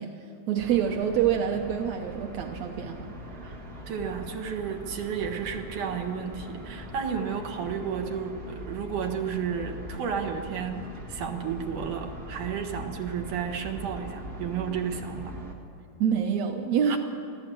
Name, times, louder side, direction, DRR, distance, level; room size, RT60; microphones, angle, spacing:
voice 1, 0.0-3.1 16.0-17.0, right 8 dB, 80° right, 3 dB, 1.5 m, -26 dB
sound 1, 0.6-15.5, equal, 30° right, 2.0 m, -41 dB
voice 2, 3.9-15.3 16.9-17.0, right 7 dB, 60° right, 3 dB, 2.7 m, -32 dB
23.0 x 15.5 x 7.7 m, 2.6 s
omnidirectional pair, 4.6 m